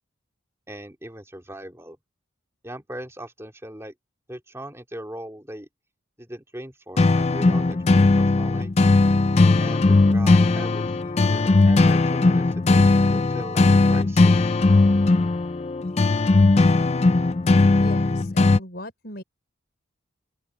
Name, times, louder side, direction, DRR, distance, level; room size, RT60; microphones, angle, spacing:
voice 1, 0.7-2.0 2.6-3.9 4.3-5.7 6.2-8.9 9.6-14.5, right 1 dB, 15° right, 3.1 m, -39 dB
sound 1, 7.0-18.6, left 3 dB, 30° left, 0.4 m, -18 dB
voice 2, 17.8-19.2, left 1 dB, 50° left, 5.3 m, -37 dB
open air
head